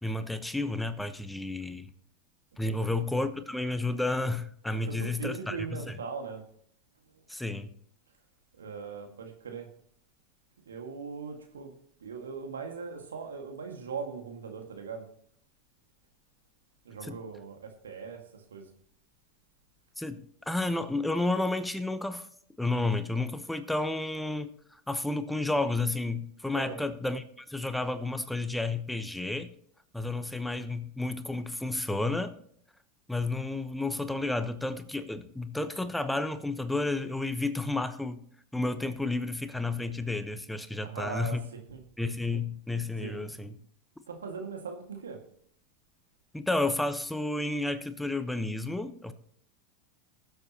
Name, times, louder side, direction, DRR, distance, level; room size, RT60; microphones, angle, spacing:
voice 1, 0.0-1.9 2.6-5.8 7.3-7.7 17.1-17.2 20.0-22.3 22.6-29.5 29.9-32.3 33.1-38.2 38.5-41.4 42.0-43.5 46.3-49.1, left 2 dB, 5° left, 10 dB, 1.0 m, -31 dB
voice 2, 4.7-6.4 7.0-7.2 8.5-9.7 10.7-11.7 12.0-15.1 16.8-18.7 26.5-26.8 40.8-41.8 43.0-43.3 44.1-45.2, right 5 dB, 90° right, 4 dB, 1.9 m, -40 dB
20.5 x 7.9 x 2.9 m, 0.64 s
hypercardioid pair, 95°, 0 cm